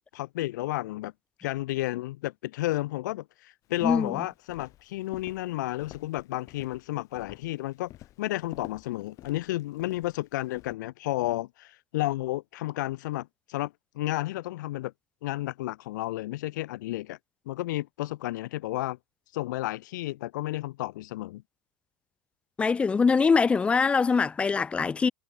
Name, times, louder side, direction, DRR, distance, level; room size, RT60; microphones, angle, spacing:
voice 1, 0.1-1.1 1.4-7.9 8.2-14.9 15.2-17.2 17.5-19.0 19.3-21.4, left 17 dB, 60° left, 1.2 m, -32 dB
Walk footsteps, 3.7-10.8, left 15 dB, 30° left, 6.3 m, -50 dB
voice 2, 22.6-25.1, left 5 dB, 10° left, 0.9 m, -23 dB
supercardioid pair, 160°, 11 cm